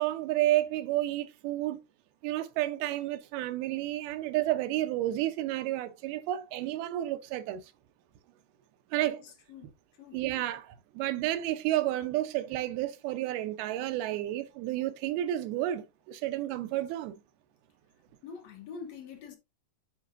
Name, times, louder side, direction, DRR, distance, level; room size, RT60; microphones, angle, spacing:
voice 1, 0.0-1.8 2.2-7.6 8.9-9.2 10.1-17.2, right 14 dB, 85° right, 2.7 m, -31 dB
voice 2, 9.0-10.2 18.2-19.4, left 6 dB, 65° left, 1.8 m, -46 dB
11.0 x 4.7 x 2.6 m
omnidirectional pair, 4.3 m